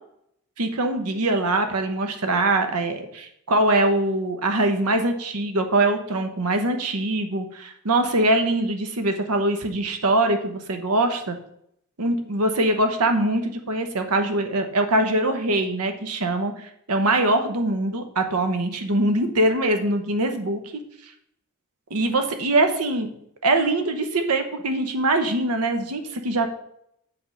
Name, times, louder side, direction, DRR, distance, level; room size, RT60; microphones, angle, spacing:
voice 1, 0.6-11.4 12.0-20.6 21.9-23.1 23.4-26.5, right 2 dB, 80° right, 6 dB, 1.0 m, -23 dB
7.8 x 3.5 x 6.3 m, 0.73 s
head